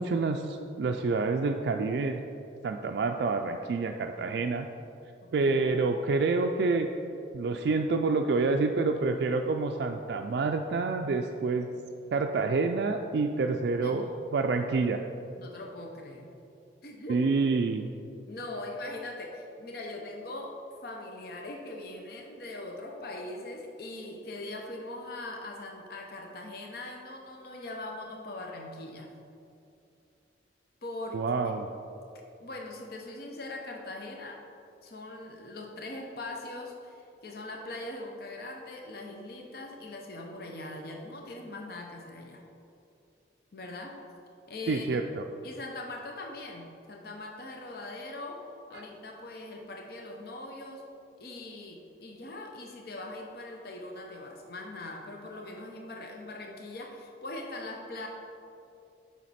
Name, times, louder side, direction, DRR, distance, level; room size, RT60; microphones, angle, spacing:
voice 1, 0.0-2.2 2.6-4.7 5.3-6.9 7.3-11.7 12.1-14.1 14.3-15.0 17.1-17.9 31.1-31.7 44.7-45.3 48.7-48.8, right 4 dB, 60° right, 4 dB, 0.3 m, -28 dB
voice 2, 5.2-5.8 13.8-14.3 15.4-16.3 16.8-17.3 18.3-20.6 20.8-29.1 30.8-31.6 32.1-34.4 34.8-42.4 43.5-44.0 44.5-45.0 45.4-48.4 48.7-50.9 51.2-58.1, left 2 dB, 55° left, 1 dB, 0.7 m, -41 dB
7.4 x 5.7 x 4.2 m, 2.6 s
head